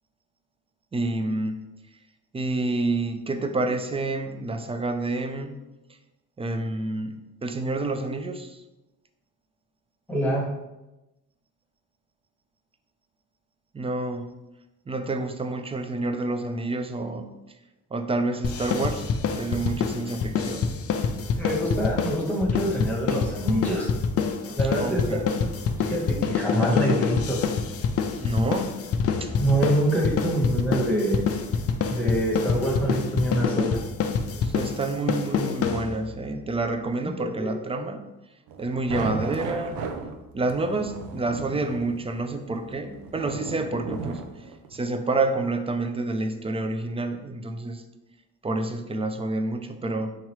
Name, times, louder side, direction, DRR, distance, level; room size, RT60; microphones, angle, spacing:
voice 1, 0.9-1.6 2.3-5.5 6.4-8.6 13.7-14.3 14.9-17.3 17.9-20.7 24.6-25.3 28.2-28.8 29.2-29.3 34.4-38.0 38.6-39.8 40.3-44.2 44.7-47.8 48.4-50.1, right 2 dB, 15° right, 7 dB, 0.4 m, -28 dB
voice 2, 10.1-10.4 21.4-23.9 24.6-25.5 25.8-27.4 29.4-31.2 31.9-33.8 37.0-37.5, right 1 dB, 5° left, -4 dB, 1.1 m, -25 dB
sound 1, 18.4-36.2, left 6 dB, 40° left, 0.4 m, -26 dB
sound 2, 38.5-44.8, right 5 dB, 75° right, 0.5 m, -36 dB
3.7 x 2.9 x 3.0 m, 0.99 s
supercardioid pair, 60°, 36 cm